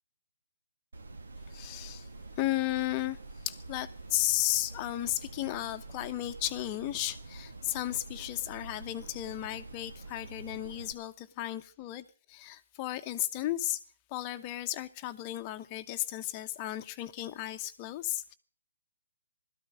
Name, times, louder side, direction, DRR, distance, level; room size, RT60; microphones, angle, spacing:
sound 1, 0.9-10.9, right 2 dB, 80° right, 2.0 m, -47 dB
voice 1, 1.5-2.1 2.4-3.2 3.4-13.8 14.1-18.3, left 15 dB, 25° left, 1.0 m, -34 dB
17.0 x 13.5 x 6.3 m
hypercardioid pair, 155°, 0 cm